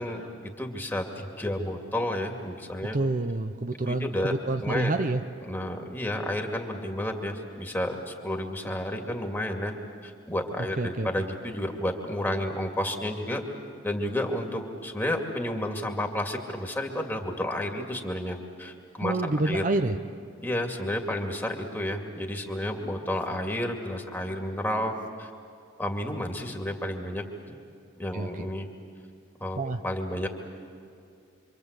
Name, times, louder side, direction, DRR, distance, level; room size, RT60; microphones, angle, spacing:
voice 1, 0.0-3.0 3.9-4.3 4.6-4.9 5.5-9.7 10.0-13.4 13.8-19.6 20.4-24.9 25.2-25.3 25.8-27.2 28.0-28.7 29.4-29.6 29.8-30.3, left 1 dB, 10° left, 2 dB, 2.5 m, -31 dB
voice 2, 2.9-5.2 10.8-11.1 19.0-20.0 28.1-28.4 29.6-29.8, right 2 dB, 45° right, 7 dB, 0.8 m, -27 dB
27.5 x 25.0 x 8.3 m, 2.4 s
head